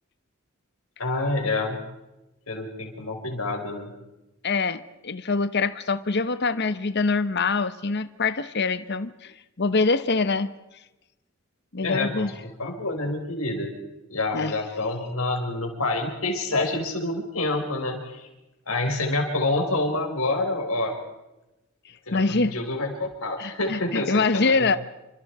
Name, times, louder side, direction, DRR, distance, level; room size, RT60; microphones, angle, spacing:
voice 1, 1.0-1.8 2.5-3.9 11.8-13.7 14.1-18.3 18.7-20.9 22.1-24.6, left 2 dB, 85° left, 3 dB, 5.2 m, -27 dB
voice 2, 4.4-10.5 11.7-12.3 14.3-14.5 22.1-22.5 23.4-24.8, left 4 dB, 55° left, 13 dB, 1.0 m, -24 dB
28.5 x 25.5 x 4.9 m, 0.98 s
head